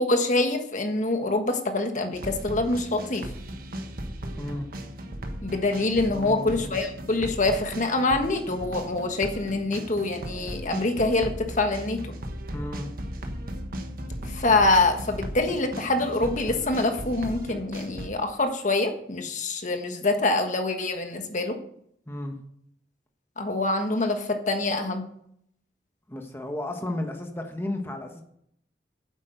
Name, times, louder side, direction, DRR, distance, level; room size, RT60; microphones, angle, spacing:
voice 1, 0.0-3.3 5.4-12.0 14.3-21.6 23.4-25.0, left 2 dB, 45° left, 5 dB, 1.4 m, -25 dB
sound 1, 2.1-18.1, equal, 55° right, 1.3 m, -37 dB
voice 2, 4.4-4.7 6.1-6.8 12.5-12.9 22.1-22.4 26.1-28.2, left 1 dB, 15° left, 3 dB, 1.2 m, -33 dB
9.1 x 8.2 x 6.7 m, 0.70 s
head